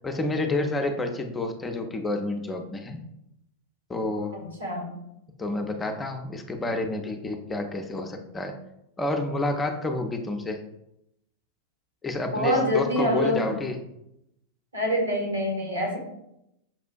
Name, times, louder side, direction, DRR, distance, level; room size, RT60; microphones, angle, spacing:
voice 1, 0.0-3.0 3.9-4.3 5.4-8.6 9.0-10.6 12.0-13.8, left 2 dB, 15° left, 5 dB, 0.4 m, -29 dB
voice 2, 4.3-4.9 12.3-13.5 14.7-16.0, left 1 dB, 80° right, -1 dB, 1.2 m, -25 dB
6.1 x 2.4 x 2.2 m, 0.82 s
figure-of-eight pair, 90°, 0 cm